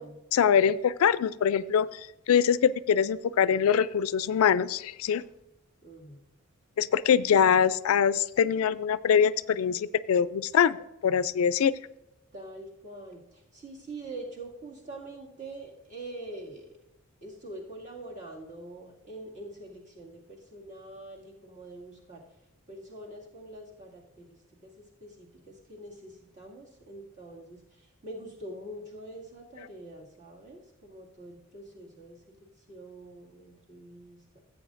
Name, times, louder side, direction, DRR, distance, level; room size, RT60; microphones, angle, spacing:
voice 1, 0.3-5.2 6.8-10.8 11.0-11.7, left 7 dB, 75° left, 17 dB, 0.3 m, -23 dB
voice 2, 5.8-6.2 12.3-16.7 17.2-22.2 22.7-34.4, right 1 dB, 35° right, -4 dB, 2.1 m, -45 dB
16.0 x 8.1 x 2.5 m, 0.91 s
head